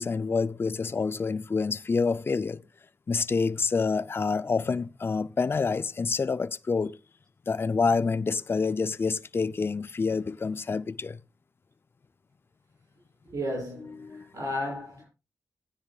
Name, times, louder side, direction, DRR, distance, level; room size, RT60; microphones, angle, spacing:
voice 1, 0.0-2.6 3.1-7.0 7.5-11.2 13.8-14.3, left 4 dB, 40° left, 0.5 m, -27 dB
voice 2, 13.3-15.1, equal, 80° right, 7.1 m, -34 dB
16.5 x 9.8 x 2.4 m
cardioid pair, 75°, 6 cm